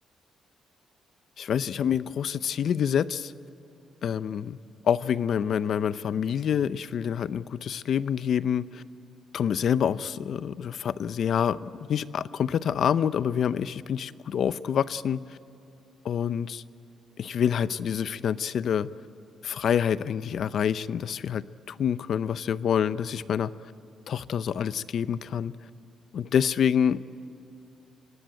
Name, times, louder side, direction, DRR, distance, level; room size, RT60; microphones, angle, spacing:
voice 1, 1.4-3.3 4.0-4.6 4.8-8.8 9.3-15.4 16.0-16.6 17.2-18.9 19.4-23.5 24.1-25.5 26.1-27.0, left 8 dB, 60° left, 16 dB, 0.6 m, -27 dB
25.0 x 18.0 x 9.3 m, 2.6 s
cardioid pair, 90°, 0 cm